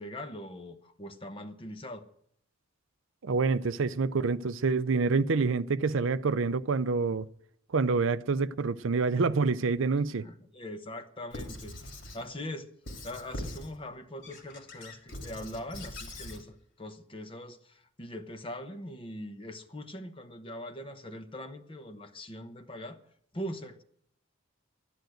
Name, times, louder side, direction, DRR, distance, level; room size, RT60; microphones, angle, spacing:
voice 1, 0.0-2.0 10.2-12.7 13.0-23.0 23.3-23.8, left 1 dB, 25° left, 1.1 m, -42 dB
voice 2, 3.2-7.2 7.7-10.2, right 4 dB, 65° right, 0.5 m, -27 dB
Squeak / Writing, 11.3-12.2 12.9-13.7 14.2-16.4, left 1 dB, 65° left, 2.9 m, -42 dB
11.5 x 10.5 x 7.8 m
head